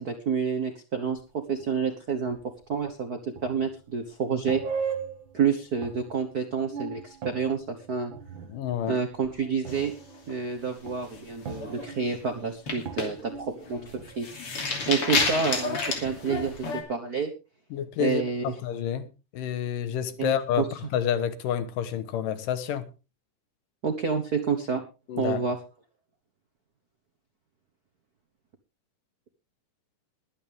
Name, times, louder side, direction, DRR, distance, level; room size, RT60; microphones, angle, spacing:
voice 1, 0.0-4.6 5.3-8.1 8.9-9.9 10.3-13.8 14.2-17.3 18.0-18.6 20.2-20.7 23.8-24.8 25.1-25.6, right 6 dB, 70° right, 0.9 m, -29 dB
sound 1, 1.1-1.2 1.6-1.7 2.1-2.9 3.4-4.0 4.4-5.4 5.7-6.3 6.5-9.4 9.6-16.5, right 6 dB, 50° right, 1.5 m, -39 dB
voice 2, 8.5-9.0 17.7-22.8 25.1-25.4, left 9 dB, 90° left, 2.8 m, -29 dB
sound 2, 9.7-10.5 10.9-11.2 11.5-11.9 12.5-16.8, left 4 dB, 45° left, 3.5 m, -30 dB
21.5 x 8.7 x 3.5 m
omnidirectional pair, 3.7 m